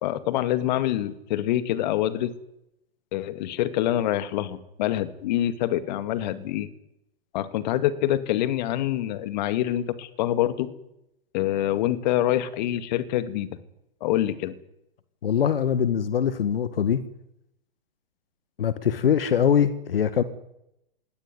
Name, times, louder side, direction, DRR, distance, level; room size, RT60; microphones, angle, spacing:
voice 1, 0.0-2.3 3.1-6.7 7.3-10.7 11.3-13.6 14.0-14.5, left 13 dB, 50° left, 13 dB, 2.2 m, -26 dB
voice 2, 15.2-17.0 18.6-20.2, left 8 dB, 70° left, 14 dB, 1.8 m, -22 dB
21.5 x 17.5 x 9.5 m, 0.82 s
hypercardioid pair, 120°, 29 cm